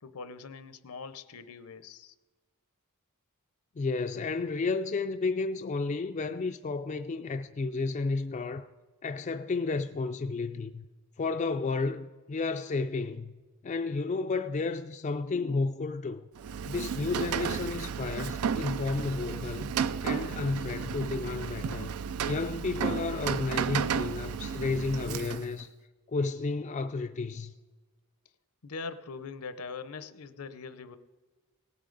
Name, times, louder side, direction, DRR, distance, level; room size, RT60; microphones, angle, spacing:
voice 1, 0.0-2.1 28.6-31.0, left 4 dB, 80° left, 0.7 m, -42 dB
voice 2, 3.8-8.7 9.0-10.9 11.2-13.3 13.6-16.3 16.6-19.7 20.0-21.9 22.3-25.7 26.1-27.5, left 3 dB, 35° left, 0.3 m, -32 dB
Rain, 16.4-25.6, right 7 dB, 75° right, 0.4 m, -33 dB
18.0 x 8.3 x 3.9 m
head